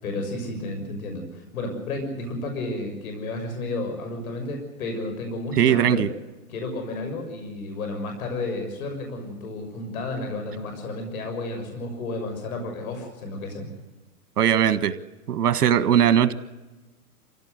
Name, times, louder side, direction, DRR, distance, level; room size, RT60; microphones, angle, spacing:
voice 1, 0.0-6.1 6.5-13.7, left 2 dB, 60° left, 5 dB, 6.4 m, -32 dB
voice 2, 5.6-6.1 14.4-14.9 15.3-16.3, right 9 dB, 75° right, 12 dB, 1.6 m, -19 dB
26.0 x 16.5 x 8.1 m, 1.1 s
hypercardioid pair, 150°, 47 cm